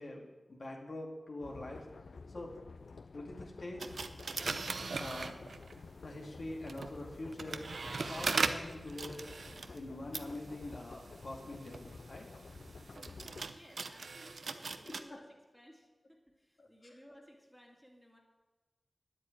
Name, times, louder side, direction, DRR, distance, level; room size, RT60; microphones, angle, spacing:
voice 1, 0.0-1.9 2.3-2.6 3.1-3.9 4.9-5.4 6.0-9.4 9.7-12.3 14.9-15.2 16.6-16.7, left 1 dB, 55° left, 0 dB, 2.2 m, -44 dB
sound 1, 1.4-13.5, left 4 dB, 85° left, 0.3 m, -51 dB
sound 2, 3.8-5.9 6.5-15.0, right 4 dB, 75° right, 0.7 m, -40 dB
voice 2, 12.8-15.3 15.5-18.2, equal, 5° left, 0 dB, 2.2 m, -59 dB
10.0 x 8.5 x 8.9 m, 1.2 s
wide cardioid pair, 95°, 0 cm